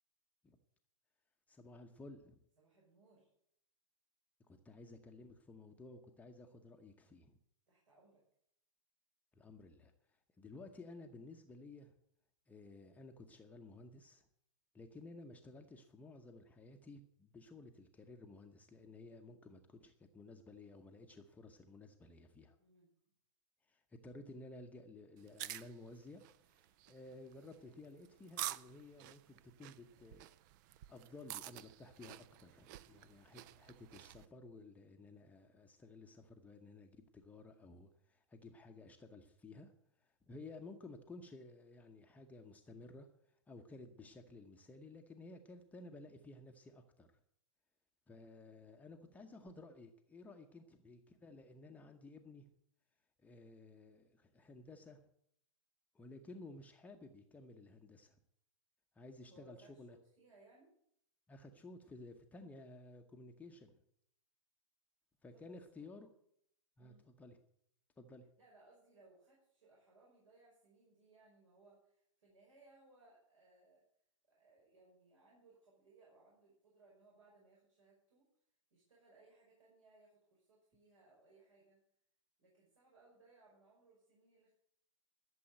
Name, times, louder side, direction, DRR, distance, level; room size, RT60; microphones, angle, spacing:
voice 1, 1.5-2.4 4.4-7.4 9.3-11.9 12.5-14.3 14.7-22.6 23.7-30.3 30.9-39.7 40.0-47.1 48.1-52.5 53.2-55.0 55.9-58.2 58.9-60.0 61.3-63.8 65.2-66.1 66.8-67.4 68.0-68.3, left 2 dB, 10° left, 3 dB, 0.9 m, -55 dB
voice 2, 2.6-3.3 7.7-8.2 22.6-22.9 32.7-33.1 59.3-60.7 65.3-65.9 66.8-67.1 68.4-73.8 74.3-78.3 78.7-81.8 82.4-84.5, right 3 dB, 70° right, -4 dB, 5.5 m, -66 dB
sound 1, 25.2-34.3, right 14 dB, 35° right, 0.5 m, -49 dB
12.5 x 7.0 x 9.1 m, 0.71 s
figure-of-eight pair, 115°, 17 cm